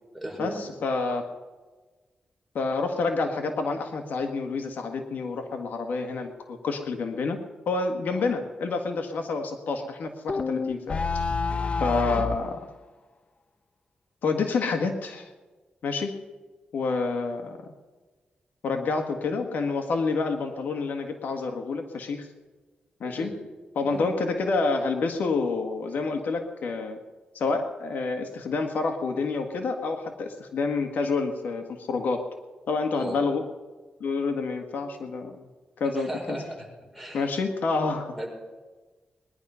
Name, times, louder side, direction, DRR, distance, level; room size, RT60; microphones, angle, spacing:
voice 1, 0.1-0.6 8.1-8.3 23.0-23.4 23.8-24.1 32.9-33.2 35.9-36.7 36.9-37.3 38.2-38.3, right 1 dB, 5° left, 0 dB, 5.6 m, -36 dB
voice 2, 0.8-1.2 2.5-7.4 7.6-11.0 11.8-12.6 14.2-15.3 15.8-16.2 16.7-17.7 18.6-22.3 23.0-23.3 23.7-27.0 27.3-32.2 32.7-33.4 34.0-35.4 35.8-36.1 37.1-38.1, left 4 dB, 85° left, 5 dB, 1.7 m, -28 dB
sound 1, 10.3-12.4, left 4 dB, 40° left, 0.6 m, -28 dB
21.5 x 11.0 x 5.7 m, 1.3 s
cardioid pair, 80°, 3 cm